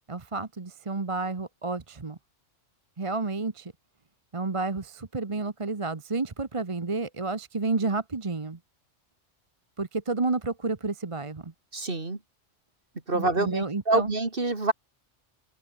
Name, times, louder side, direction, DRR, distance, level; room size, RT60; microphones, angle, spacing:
voice 1, 0.1-2.2 3.0-3.7 4.3-8.6 9.8-11.5 13.1-14.1, right 3 dB, 30° right, 1.1 m, -30 dB
voice 2, 11.7-12.2 13.1-14.7, right 2 dB, 50° right, 3.0 m, -26 dB
open air
omnidirectional pair, 1.2 m